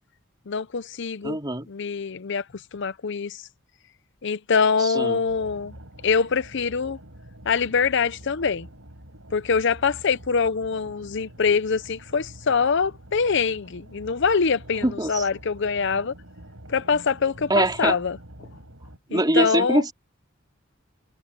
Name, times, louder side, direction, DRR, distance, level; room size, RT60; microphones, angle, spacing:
voice 1, 0.5-1.4 1.7-2.4 2.7-3.4 4.2-5.7 6.0-7.0 7.5-8.7 9.3-16.1 16.7-18.2 19.1-19.8, left 5 dB, 60° left, 0.6 m, -24 dB
voice 2, 1.2-1.7 4.8-5.2 14.8-15.3 17.5-18.0 19.1-19.9, right 1 dB, 20° right, 3.7 m, -23 dB
sound 1, 5.3-19.0, right 1 dB, 85° right, 6.8 m, -46 dB
head